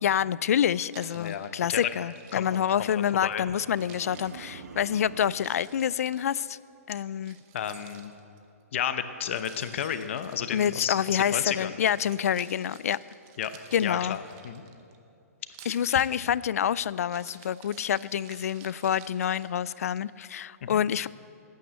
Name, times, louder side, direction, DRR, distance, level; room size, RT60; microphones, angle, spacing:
voice 1, 0.0-6.6 6.9-7.4 10.5-13.0 13.7-14.2 15.7-21.1, left 9 dB, 70° left, 20 dB, 0.3 m, -27 dB
Keys jangling, 0.9-3.4 3.7-6.5 7.2-8.4 9.3-11.2 11.6-15.0 15.5-20.0, right 8 dB, 25° right, 0.8 m, -53 dB
voice 2, 1.2-1.9 2.3-3.4 7.5-8.1 8.7-11.8 13.4-14.6 15.9-16.0 20.6-20.8, left 9 dB, 50° left, 11 dB, 0.9 m, -32 dB
sound 1, 3.4-5.5, right 4 dB, 90° right, 1.3 m, -45 dB
13.0 x 9.3 x 8.1 m, 2.7 s
hypercardioid pair, 160°, 8 cm